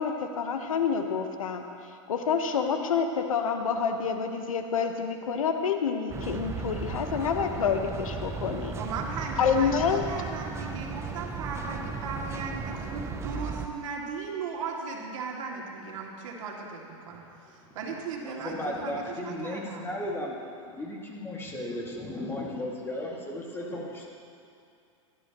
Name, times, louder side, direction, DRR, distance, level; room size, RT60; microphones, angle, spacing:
voice 1, 0.0-8.8 9.4-10.0, left 6 dB, 85° left, 6 dB, 1.1 m, -28 dB
sound 1, 6.1-13.7, right 5 dB, 15° right, 0.6 m, -36 dB
voice 2, 8.8-19.9, right 4 dB, 75° right, -1 dB, 2.4 m, -37 dB
voice 3, 18.2-20.4 20.7-24.1, left 1 dB, 15° left, -3 dB, 2.2 m, -35 dB
18.0 x 12.0 x 3.0 m, 2.5 s
hypercardioid pair, 120°, 17 cm